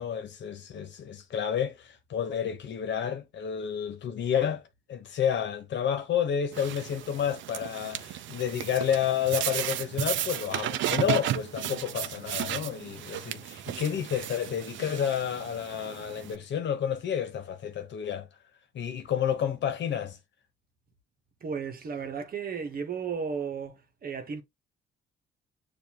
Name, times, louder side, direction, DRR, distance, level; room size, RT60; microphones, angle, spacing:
voice 1, 0.0-4.6 4.9-18.3 18.7-20.2, left 8 dB, 65° left, 1.1 m, -30 dB
sound 1, 6.5-16.4, right 12 dB, 70° right, 0.5 m, -34 dB
voice 2, 21.4-24.4, right 6 dB, 50° right, 1.2 m, -34 dB
6.8 x 2.7 x 2.9 m
cardioid pair, 90°, 20 cm